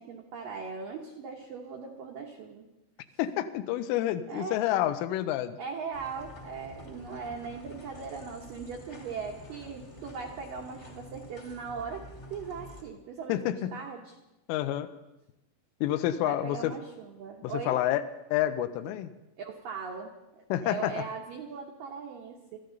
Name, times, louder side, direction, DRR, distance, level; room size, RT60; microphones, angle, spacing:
voice 1, 0.0-2.7 4.3-4.6 5.6-12.1 12.3-14.1 16.2-17.8 19.4-20.1 20.6-22.6, right 5 dB, 80° right, 0 dB, 2.0 m, -39 dB
voice 2, 3.2-5.6 13.3-13.8 14.5-14.9 15.8-16.7 17.4-18.0 18.3-19.1 20.5-21.0, left 13 dB, 85° left, 11 dB, 3.2 m, -28 dB
sound 1, 5.9-12.8, left 1 dB, 45° left, 0.8 m, -48 dB
23.5 x 14.5 x 4.0 m, 0.94 s
omnidirectional pair, 5.8 m